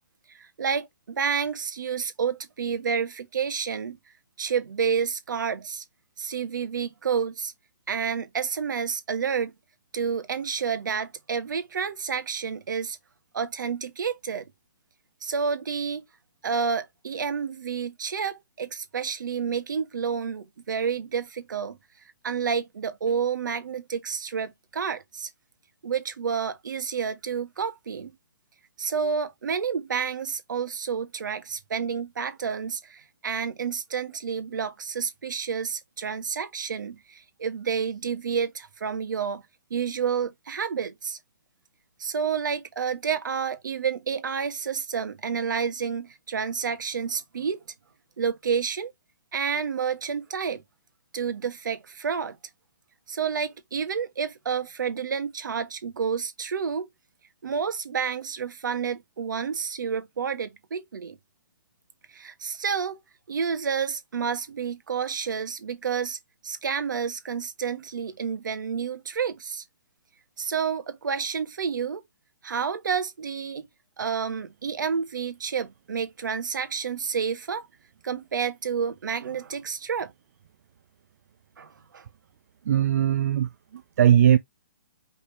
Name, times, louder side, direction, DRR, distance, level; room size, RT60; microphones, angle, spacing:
voice 1, 0.3-4.0 4.4-5.8 6.2-7.5 7.9-9.5 9.9-13.0 13.3-14.5 15.2-16.0 16.4-21.8 22.2-25.3 25.8-28.1 28.8-39.4 39.7-41.2 42.0-47.6 48.2-48.9 49.3-50.6 51.1-52.4 53.1-56.9 57.4-61.2 62.1-63.0 63.3-66.2 66.4-69.6 70.4-72.0 72.4-73.7 74.0-77.7 78.0-80.1 81.6-82.1, right 6 dB, 70° right, 1.4 m, -29 dB
voice 2, 82.7-84.4, right 10 dB, 50° right, 0.4 m, -20 dB
5.3 x 3.5 x 2.6 m
hypercardioid pair, 155°, 11 cm